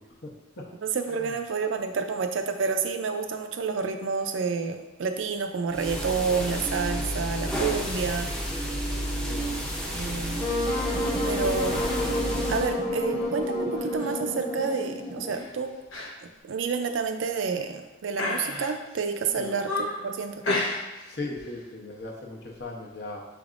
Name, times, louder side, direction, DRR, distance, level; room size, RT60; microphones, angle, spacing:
voice 1, 0.8-8.3 9.9-10.5 11.3-11.8 12.5-15.7 16.2-20.4, right 5 dB, 70° right, 6 dB, 0.4 m, -29 dB
sound 1, 5.7-12.7, right 1 dB, 5° left, 0.6 m, -31 dB
Wind instrument woodwind instrument, 10.4-15.5, left 1 dB, 35° left, 1.2 m, -29 dB
sound 2, 13.8-14.1 14.5-14.8 15.3-15.5 15.9-16.1 16.4-16.5 17.2-17.7 18.1-19.0 19.4-20.1 20.4-21.1 21.4-21.6, left 2 dB, 85° left, 0.8 m, -32 dB
voice 2, 21.1-23.2, left 2 dB, 60° left, -1 dB, 0.8 m, -37 dB
6.1 x 3.4 x 2.5 m, 1.0 s
head